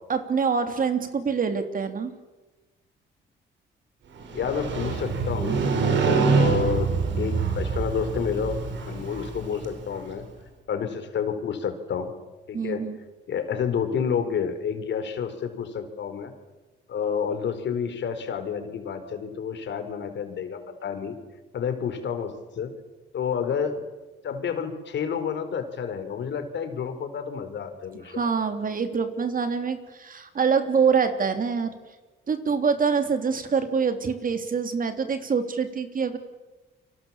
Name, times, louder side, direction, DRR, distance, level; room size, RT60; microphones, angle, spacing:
voice 1, 0.1-2.1 12.5-13.0 28.1-31.8 32.3-36.2, right 6 dB, 45° right, 8 dB, 3.3 m, -25 dB
Motorcycle, 4.2-10.1, right 5 dB, 65° right, 5.4 m, -25 dB
voice 2, 4.3-5.6 5.9-8.6 8.9-10.2 10.7-12.1 12.5-12.8 13.3-16.3 16.9-21.2 21.5-22.7 23.1-23.8 24.2-28.2, left 7 dB, 65° left, 8 dB, 4.3 m, -29 dB
29.5 x 24.5 x 7.4 m, 1.2 s
cardioid pair, 90°, 20 cm